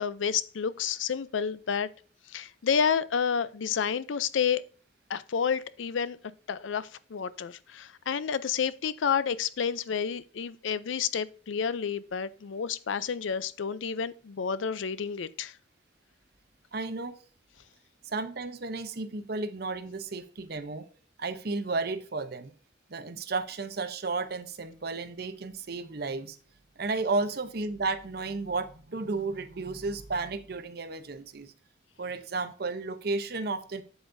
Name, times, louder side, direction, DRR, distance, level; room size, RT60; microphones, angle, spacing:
voice 1, 0.0-1.9 2.3-4.6 5.1-6.2 6.5-15.5, left 7 dB, 85° left, 0.5 m, -30 dB
voice 2, 16.7-17.2 18.1-20.8 21.2-22.5 22.9-26.4 26.8-31.5 32.0-33.8, right 3 dB, 55° right, 0.7 m, -33 dB
8.1 x 8.0 x 2.6 m
head